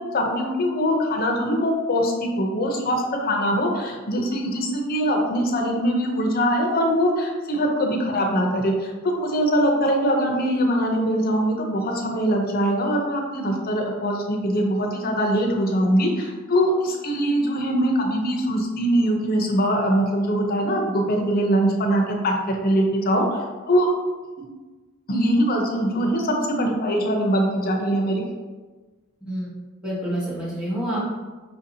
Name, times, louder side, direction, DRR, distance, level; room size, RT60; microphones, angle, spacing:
voice 1, 0.0-23.9 25.1-28.3, equal, 45° left, 1 dB, 0.6 m, -22 dB
voice 2, 29.2-29.5 29.8-31.1, right 1 dB, 5° right, -8 dB, 1.3 m, -27 dB
5.5 x 2.7 x 2.7 m, 1.3 s
head